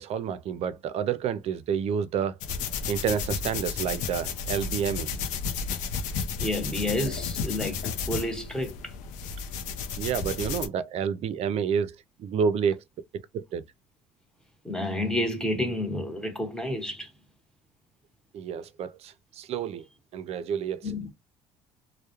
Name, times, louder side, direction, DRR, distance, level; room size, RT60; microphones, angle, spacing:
voice 1, 0.0-2.4 2.9-5.1 10.0-12.8 13.3-13.6 18.3-19.9 20.1-20.9, right 7 dB, 55° right, 0.4 m, -29 dB
sound 1, 2.4-10.7, left 6 dB, 75° left, 0.5 m, -32 dB
voice 2, 6.4-8.9 14.6-17.1 20.8-21.1, left 1 dB, 5° left, 0.9 m, -30 dB
2.2 x 2.1 x 2.9 m
supercardioid pair, 85°, 13 cm